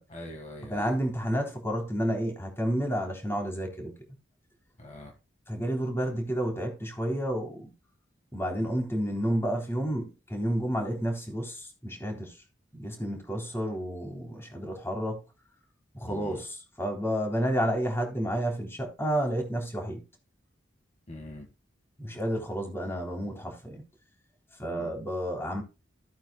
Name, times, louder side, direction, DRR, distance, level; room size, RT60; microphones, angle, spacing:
voice 1, 0.1-0.9 4.8-5.1 16.1-16.4 21.1-21.5 24.7-25.0, left 1 dB, 40° left, 1.9 m, -43 dB
voice 2, 0.7-3.9 5.5-7.7 8.3-12.3 12.7-15.2 15.9-20.0 22.0-23.8 24.6-25.6, equal, 15° left, 3.5 m, -30 dB
15.5 x 8.9 x 2.3 m
head